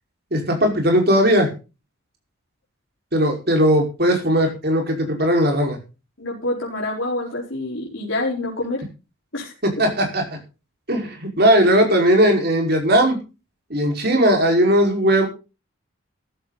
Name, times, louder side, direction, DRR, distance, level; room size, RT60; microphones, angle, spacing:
voice 1, 0.3-1.5 3.1-5.8 9.6-10.2 10.9-13.2 13.7-15.3, equal, 50° right, 2 dB, 5.3 m, -18 dB
voice 2, 6.2-8.8 9.3-9.5, left 2 dB, 70° left, -3 dB, 4.7 m, -26 dB
15.0 x 13.0 x 4.2 m, 0.32 s
head